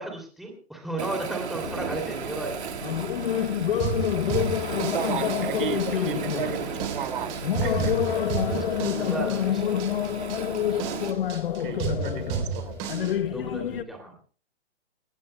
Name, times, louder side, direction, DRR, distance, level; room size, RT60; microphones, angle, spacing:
voice 1, 0.0-2.6 8.1-9.6 13.3-14.1, right 1 dB, ahead, 2.8 m, -34 dB
Waves surf, 1.0-11.1, right 8 dB, 70° right, 2.1 m, -35 dB
sound 1, 1.6-13.8, left 10 dB, 55° left, 1.0 m, -28 dB
sound 2, 3.8-13.1, right 8 dB, 25° right, 3.5 m, -33 dB
voice 2, 4.9-8.4 11.6-12.8, right 9 dB, 50° right, 2.4 m, -34 dB
29.5 x 16.0 x 2.3 m
hypercardioid pair, 165°, 34 cm